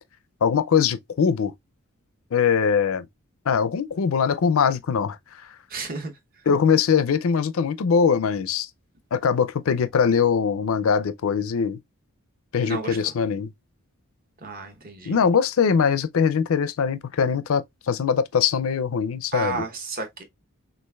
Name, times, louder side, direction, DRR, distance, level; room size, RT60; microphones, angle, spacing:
voice 1, 0.4-1.5 2.3-3.1 3.5-5.2 6.5-8.7 9.1-11.8 12.5-13.5 15.1-19.6, left 6 dB, 65° left, 0.4 m, -22 dB
voice 2, 5.7-6.1 12.6-13.1 14.4-15.2 19.3-20.2, right 3 dB, 40° right, 0.9 m, -32 dB
6.2 x 2.4 x 2.3 m
head